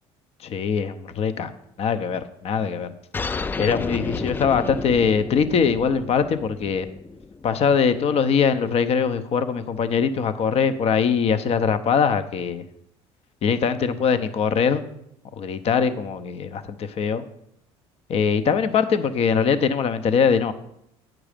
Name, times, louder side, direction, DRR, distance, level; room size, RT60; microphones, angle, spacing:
voice 1, 0.4-1.5 1.8-2.9 3.6-6.9 7.4-12.6 13.4-14.8 15.4-17.2 18.1-20.5, left 6 dB, 50° left, 11 dB, 0.7 m, -22 dB
sound 1, 3.1-8.2, left 4 dB, 15° left, 0.3 m, -32 dB
8.9 x 6.1 x 5.1 m, 0.75 s
supercardioid pair, 80°, 13 cm